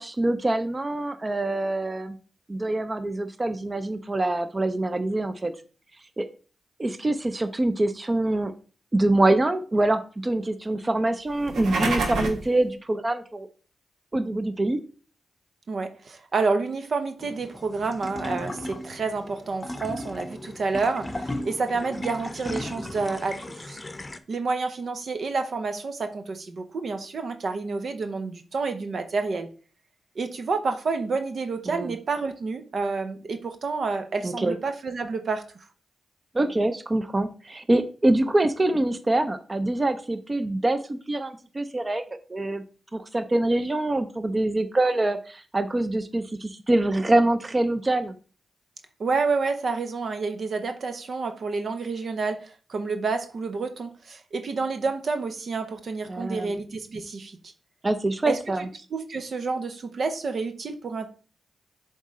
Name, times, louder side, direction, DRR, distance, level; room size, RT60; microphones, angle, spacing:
voice 1, 0.0-2.2 2.5-5.5 6.2-6.3 6.8-8.5 8.9-13.5 14.1-14.8 31.7-31.9 34.2-34.6 36.3-42.6 42.9-48.2 56.1-56.6 57.8-58.7, right 2 dB, 30° right, 0.7 m, -25 dB
sound 1, 11.3-12.5, right 3 dB, 85° right, 1.2 m, -27 dB
voice 2, 15.7-23.8 24.3-29.5 30.2-35.5 49.0-57.5 58.2-61.1, right 4 dB, 65° right, 0.8 m, -29 dB
sound 2, 17.2-24.2, left 1 dB, 25° left, 0.8 m, -36 dB
7.1 x 3.7 x 4.3 m
cardioid pair, 55°, 0 cm